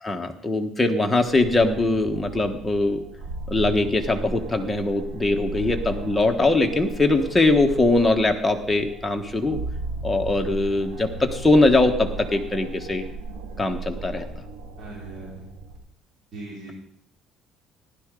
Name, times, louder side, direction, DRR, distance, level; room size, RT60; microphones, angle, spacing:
voice 1, 0.0-3.0 3.5-9.6 10.0-13.0 13.6-14.2, left 2 dB, 10° left, 3 dB, 1.4 m, -21 dB
sound 1, 1.2-15.8, right 3 dB, 85° right, 1.9 m, -36 dB
voice 2, 14.8-15.4 16.3-16.7, right 2 dB, 45° right, -8 dB, 4.8 m, -39 dB
15.5 x 11.5 x 3.9 m, 0.68 s
cardioid pair, 125°, 0 cm